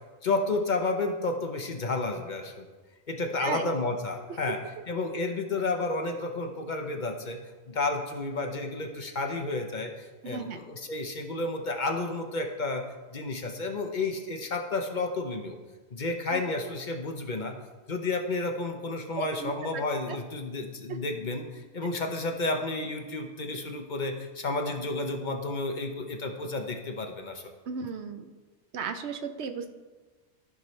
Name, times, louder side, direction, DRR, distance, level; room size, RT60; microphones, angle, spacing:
voice 1, 0.2-2.6 3.1-4.6 4.9-7.4 7.7-12.8 13.1-15.6 15.9-17.5 17.9-27.5, left 3 dB, 45° left, 4 dB, 0.8 m, -31 dB
voice 2, 3.4-3.7 4.4-4.5 10.2-10.6 16.3-16.4 19.2-19.8 20.1-20.2 27.7-28.3 28.7-29.7, right 5 dB, 75° right, 8 dB, 0.9 m, -35 dB
13.5 x 5.8 x 3.2 m, 1.3 s
omnidirectional pair, 1.2 m